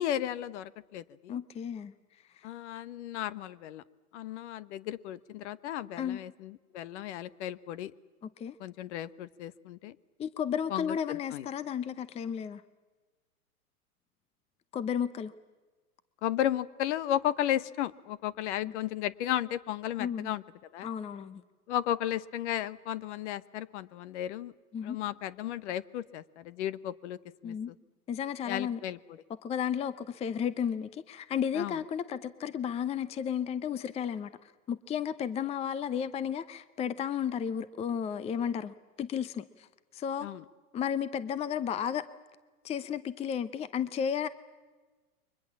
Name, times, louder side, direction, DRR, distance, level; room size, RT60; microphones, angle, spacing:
voice 1, 0.0-1.4 2.4-3.8 4.1-7.9 8.6-10.0 10.7-11.5 16.2-20.4 20.7-20.9 21.7-24.5 24.8-27.7 28.5-29.0 31.5-31.8 40.2-40.4, left 12 dB, 50° left, 18 dB, 1.2 m, -34 dB
voice 2, 1.3-1.9 6.0-6.2 8.4-8.6 10.2-12.6 14.7-15.3 18.6-18.7 20.0-20.3 20.8-21.4 24.7-25.0 27.4-27.7 28.1-28.8 29.4-34.3 34.7-39.7 39.9-40.3 40.7-42.1 42.6-44.3, left 8 dB, 15° left, 16 dB, 0.7 m, -33 dB
29.5 x 24.0 x 7.3 m, 1.3 s
hypercardioid pair, 110°, 45 cm